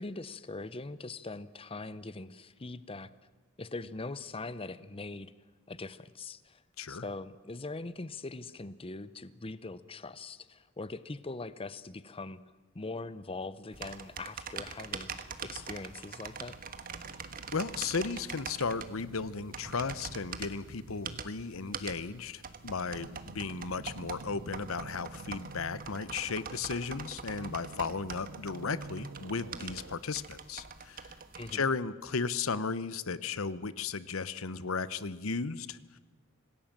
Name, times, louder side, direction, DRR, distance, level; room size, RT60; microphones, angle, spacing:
voice 1, 0.0-3.1 3.6-5.3 5.7-6.6 6.9-12.4 12.7-16.5 31.4-31.7, left 3 dB, 25° left, 15 dB, 0.7 m, -42 dB
sound 1, 13.7-31.5, right 5 dB, 45° right, 1.4 m, -44 dB
sound 2, 15.9-30.0, right 3 dB, 75° right, 0.6 m, -50 dB
voice 2, 17.5-31.1 31.5-36.0, left 4 dB, 80° left, 16 dB, 0.9 m, -35 dB
26.5 x 18.5 x 7.4 m, 1.3 s
head